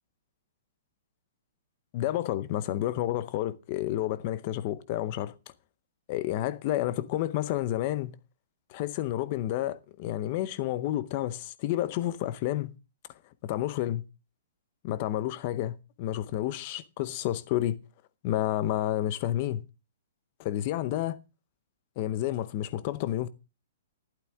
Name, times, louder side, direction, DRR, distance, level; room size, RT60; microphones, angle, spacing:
voice 1, 1.9-5.3 6.1-8.2 8.7-12.7 13.4-14.0 14.8-17.8 18.2-19.6 20.4-21.2 22.0-23.3, left 13 dB, 25° left, 0.7 m, -30 dB
12.0 x 11.5 x 3.5 m
hypercardioid pair, 180°, 0 cm